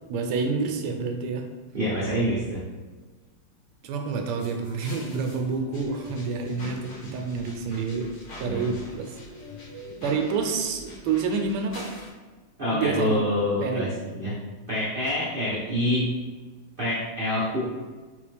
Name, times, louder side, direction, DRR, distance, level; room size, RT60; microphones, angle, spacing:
voice 1, 0.1-1.5 3.8-8.1 8.4-9.2 10.0-11.9 12.7-13.2 13.6-13.9, right 4 dB, 90° right, 4 dB, 1.5 m, -28 dB
voice 2, 1.7-2.6 8.4-8.7 12.6-14.3 14.7-16.1 16.8-17.7, left 1 dB, 65° right, -8 dB, 0.5 m, -26 dB
sound 1, 4.4-12.1, left 1 dB, 70° left, 2.0 m, -44 dB
4.0 x 3.5 x 3.3 m, 1.3 s
omnidirectional pair, 2.4 m